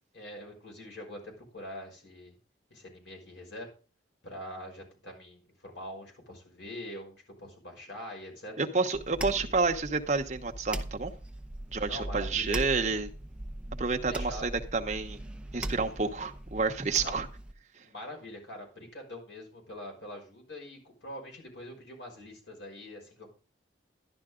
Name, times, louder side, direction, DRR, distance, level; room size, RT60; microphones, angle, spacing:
voice 1, 0.1-2.4 2.7-3.7 4.2-8.7 9.3-9.5 11.9-12.6 14.1-14.5 17.0-17.2 17.8-23.3, left 1 dB, 75° left, 1 dB, 5.9 m, -44 dB
voice 2, 8.6-11.1 11.7-13.1 13.8-15.2 15.5-17.3, right 4 dB, 40° right, 4 dB, 1.0 m, -29 dB
sound 1, 8.9-17.5, right 1 dB, 5° right, 0.7 m, -40 dB
12.0 x 11.0 x 3.8 m, 0.35 s
head